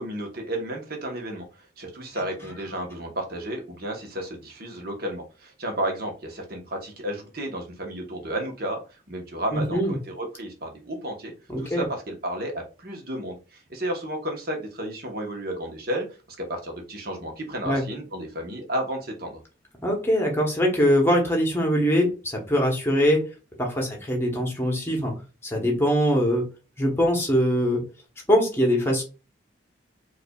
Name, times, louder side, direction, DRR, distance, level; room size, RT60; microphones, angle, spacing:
voice 1, 0.0-1.4 1.8-8.8 9.1-11.3 11.6-16.0 16.4-19.4, right 1 dB, 50° right, 2 dB, 1.0 m, -32 dB
voice 2, 9.5-10.0 11.5-11.8 17.6-17.8 19.8-23.2 23.6-25.1 25.4-26.4 26.8-27.8 28.3-29.0, equal, 10° left, 1 dB, 1.0 m, -22 dB
4.7 x 2.5 x 2.3 m, 0.31 s
head